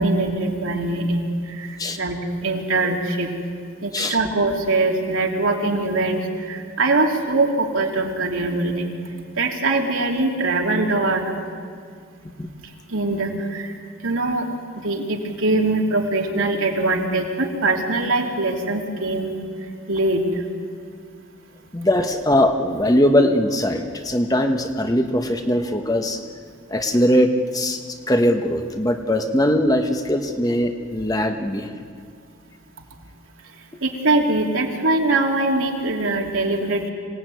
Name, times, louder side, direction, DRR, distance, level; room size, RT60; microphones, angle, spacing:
voice 1, 0.0-3.3 3.8-8.9 9.4-11.3 12.9-13.7 14.0-14.5 14.8-19.3 19.9-20.2 33.8-36.9, right 2 dB, 80° right, 1 dB, 3.3 m, -22 dB
voice 2, 21.7-26.2 26.7-31.8, left 1 dB, 15° left, 5 dB, 1.2 m, -20 dB
26.0 x 18.5 x 9.4 m, 2.1 s
head